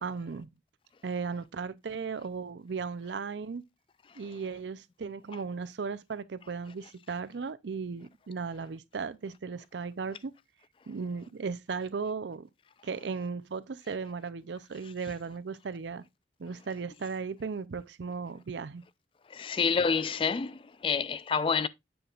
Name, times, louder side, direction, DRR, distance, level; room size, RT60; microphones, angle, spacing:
voice 1, 0.0-0.5 1.0-3.6 4.2-10.3 10.9-12.5 12.8-16.0 16.4-18.8, right 5 dB, 75° right, 0.5 m, -36 dB
voice 2, 19.4-20.5 20.8-21.7, left 5 dB, 30° left, 0.3 m, -27 dB
7.8 x 6.5 x 2.4 m
head